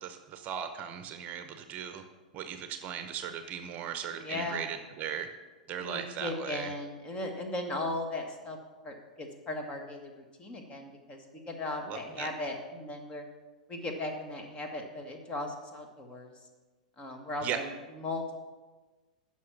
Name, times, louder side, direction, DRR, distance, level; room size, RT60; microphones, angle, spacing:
voice 1, 0.0-2.0 2.3-5.3 5.7-6.7 11.9-12.3 17.4-17.6, right 9 dB, 35° right, 8 dB, 0.8 m, -37 dB
voice 2, 4.2-4.7 5.8-8.6 8.8-13.2 13.7-16.3 17.0-18.4, left 2 dB, 25° left, 4 dB, 1.7 m, -37 dB
9.6 x 6.2 x 5.9 m, 1.3 s
hypercardioid pair, 100°, 4 cm